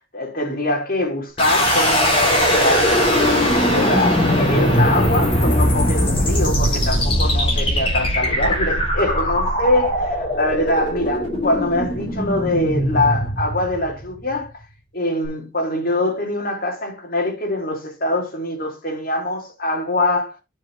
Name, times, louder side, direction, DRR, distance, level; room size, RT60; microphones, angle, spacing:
voice 1, 0.1-9.9 10.2-14.5 14.9-20.4, left 1 dB, 45° left, 3.1 m, -23 dB
sound 1, 1.4-14.3, equal, 25° left, 3.9 m, -20 dB
9.5 x 6.0 x 3.5 m
head